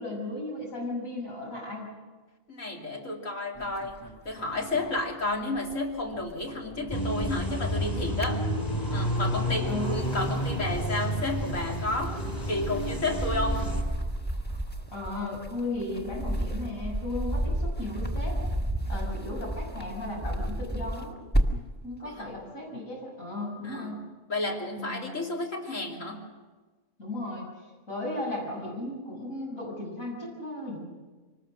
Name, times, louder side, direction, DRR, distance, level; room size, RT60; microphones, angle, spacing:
voice 1, 0.0-1.9 9.7-10.0 14.9-18.4 18.9-21.2 21.8-24.0 24.8-25.1 27.0-27.5 27.9-30.8, left 1 dB, 90° left, -2 dB, 6.9 m, -35 dB
voice 2, 2.5-8.4 8.9-13.7 22.0-22.3 23.6-24.0 24.3-26.2, left 2 dB, 70° left, 0 dB, 3.3 m, -32 dB
sound 1, 3.6-5.7 6.0-7.6 8.0-9.0 9.5-21.8, right 1 dB, 10° left, 1.4 m, -33 dB
sound 2, 6.9-13.8, equal, 30° left, 4.5 m, -30 dB
24.5 x 20.0 x 6.4 m, 1.3 s
omnidirectional pair, 1.4 m